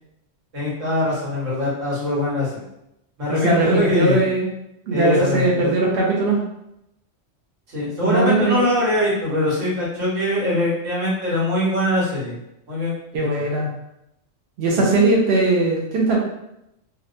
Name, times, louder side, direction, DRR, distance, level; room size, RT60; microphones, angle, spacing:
voice 1, 0.5-2.6 3.2-4.2 4.9-5.7 7.7-12.4 12.7-12.9 14.7-14.8, left 1 dB, 85° right, -7 dB, 1.4 m, -22 dB
voice 2, 3.4-4.5 4.9-6.4 8.0-8.6 13.1-13.7 14.6-16.2, right 2 dB, 60° right, -3 dB, 0.8 m, -19 dB
2.8 x 2.1 x 2.4 m, 0.83 s
omnidirectional pair, 1.3 m